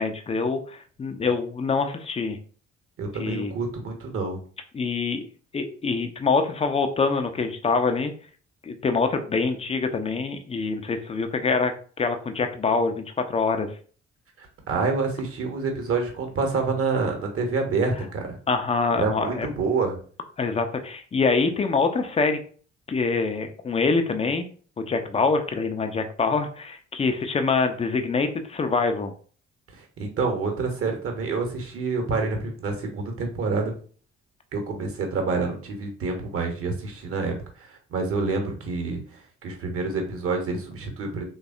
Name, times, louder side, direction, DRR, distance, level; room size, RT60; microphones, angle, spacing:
voice 1, 0.0-2.4 3.2-3.5 4.7-5.2 5.5-8.1 8.6-11.7 12.0-13.7 18.5-19.5 20.4-22.4 22.9-24.5 24.8-29.1, left 4 dB, 20° left, 7 dB, 0.4 m, -25 dB
voice 2, 3.0-4.4 14.4-18.4 19.0-20.0 29.7-33.7 34.5-41.2, right 4 dB, 40° right, 3 dB, 0.9 m, -27 dB
3.3 x 2.2 x 2.5 m, 0.42 s
figure-of-eight pair, 45°, 34 cm